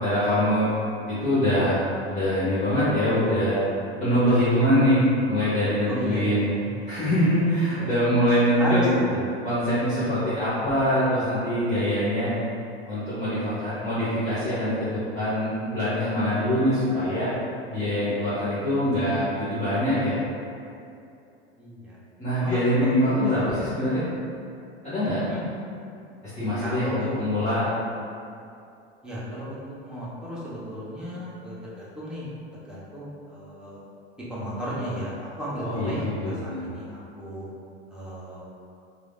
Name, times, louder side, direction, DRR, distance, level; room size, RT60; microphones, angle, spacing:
voice 1, 0.0-0.7 1.1-1.8 2.0-3.6 4.0-5.0 5.3-6.6 6.9-8.9 9.4-12.3 12.9-17.3 17.7-20.2 22.2-24.1 24.8-25.2 26.3-27.7 35.6-36.6, equal, 20° left, -14 dB, 1.0 m, -24 dB
voice 2, 5.9-6.7 8.6-9.2 21.6-22.0 22.4-23.5 25.2-25.4 26.6-27.1 29.0-32.3 32.5-33.8 34.3-37.5 37.9-38.4, equal, 5° right, -9 dB, 0.7 m, -33 dB
3.1 x 2.5 x 2.3 m, 2.5 s
hypercardioid pair, 95°, 32 cm